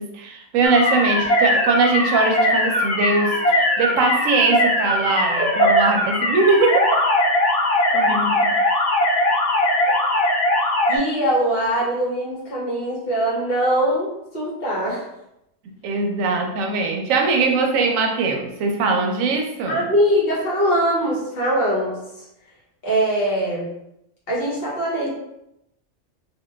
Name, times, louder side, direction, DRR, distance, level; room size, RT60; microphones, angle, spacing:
voice 1, 0.0-6.9 7.9-8.5 15.8-19.9, right 3 dB, 90° right, 3 dB, 1.0 m, -21 dB
sound 1, 0.6-11.0, left 1 dB, 80° left, 0.3 m, -20 dB
voice 2, 5.4-5.7 10.9-14.1 14.3-15.1 19.7-21.9 22.8-23.7 24.3-25.1, right 1 dB, 50° left, -7 dB, 1.3 m, -22 dB
2.8 x 2.8 x 2.2 m, 0.85 s
omnidirectional pair, 1.3 m